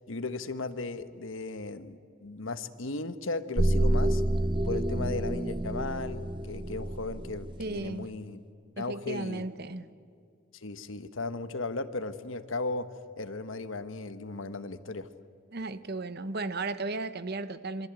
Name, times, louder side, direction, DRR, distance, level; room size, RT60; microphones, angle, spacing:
voice 1, 0.0-4.2 4.6-8.4 8.8-9.5 10.5-12.9 13.2-15.1, left 3 dB, 75° left, 11 dB, 1.3 m, -36 dB
sound 1, 3.6-7.8, right 1 dB, 25° right, 0.7 m, -28 dB
voice 2, 7.6-8.1 8.8-9.9 15.5-17.9, right 3 dB, 50° right, 13 dB, 1.0 m, -35 dB
26.5 x 24.5 x 9.1 m, 2.3 s
head